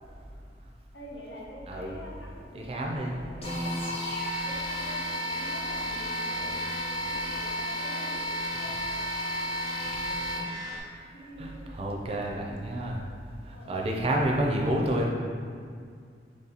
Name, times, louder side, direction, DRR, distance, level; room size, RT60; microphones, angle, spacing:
voice 1, 0.9-3.7 4.2-9.8 11.1-11.7 13.5-13.8, equal, 85° left, -4 dB, 0.8 m, -47 dB
voice 2, 2.5-3.2 6.3-6.5 11.4-13.0 13.7-15.1, right 1 dB, 35° right, -1 dB, 0.4 m, -29 dB
sound 1, 3.4-10.8, equal, 35° left, 0.8 m, -32 dB
3.9 x 3.1 x 2.9 m, 2.2 s
head